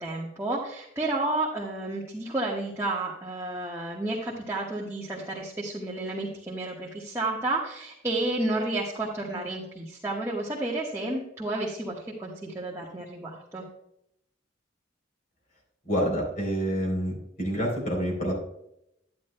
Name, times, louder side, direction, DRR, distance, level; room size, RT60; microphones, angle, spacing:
voice 1, 0.0-13.6, right 2 dB, 15° right, -4 dB, 1.3 m, -31 dB
voice 2, 15.9-17.1 17.4-18.3, equal, 45° left, -1 dB, 3.5 m, -27 dB
10.5 x 10.5 x 2.2 m, 0.78 s
head